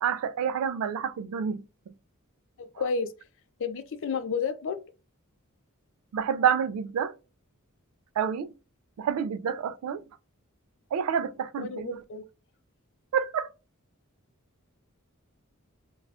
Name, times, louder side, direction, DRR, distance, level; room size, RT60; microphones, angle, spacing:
voice 1, 0.0-1.9 6.1-7.2 8.2-8.5 9.0-10.0 10.9-12.0 13.1-13.5, right 7 dB, 75° right, 0.3 m, -28 dB
voice 2, 2.6-3.1 3.6-4.8 11.6-12.2, left 5 dB, 60° left, 0.4 m, -31 dB
2.4 x 2.3 x 3.3 m
head